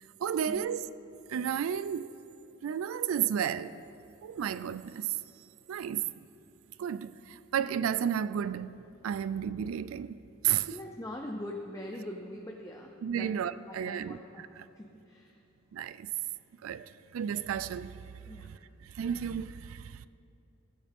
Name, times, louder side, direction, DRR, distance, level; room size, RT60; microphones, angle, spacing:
voice 1, 0.2-0.9 1.3-2.1 2.6-3.8 4.2-5.2 5.7-6.0 6.8-10.2 10.4-10.8 13.0-14.7 15.7-16.1 16.6-18.0 18.4-20.1, right 9 dB, 80° right, 0.3 m, -33 dB
voice 2, 10.7-13.4 13.7-14.5 14.7-15.3 18.3-18.5, left 1 dB, 15° left, 0.6 m, -42 dB
16.0 x 8.5 x 3.6 m
head